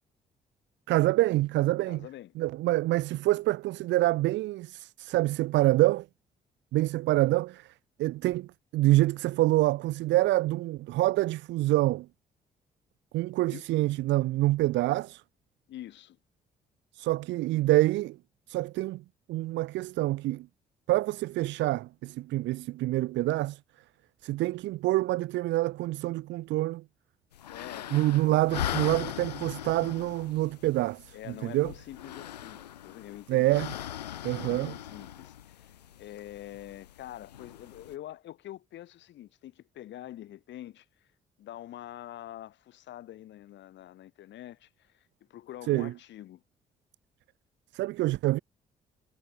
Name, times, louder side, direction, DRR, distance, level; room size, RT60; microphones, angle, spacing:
voice 1, 0.9-2.1 2.4-6.1 6.7-7.7 8.0-12.1 13.1-15.2 16.9-18.2 18.5-19.0 19.3-20.5 20.9-23.6 24.2-26.8 27.9-31.7 33.3-33.7 34.2-34.7 45.7-45.9 47.7-48.4, right 17 dB, 65° right, 1.3 m, -26 dB
voice 2, 1.9-2.3 13.4-13.6 15.7-16.2 27.5-28.4 31.1-33.6 34.3-40.8 41.4-46.4, left 13 dB, 60° left, 5.1 m, -45 dB
sound 1, 27.3-38.0, left 11 dB, 85° left, 6.6 m, -40 dB
figure-of-eight pair, 40°, 21 cm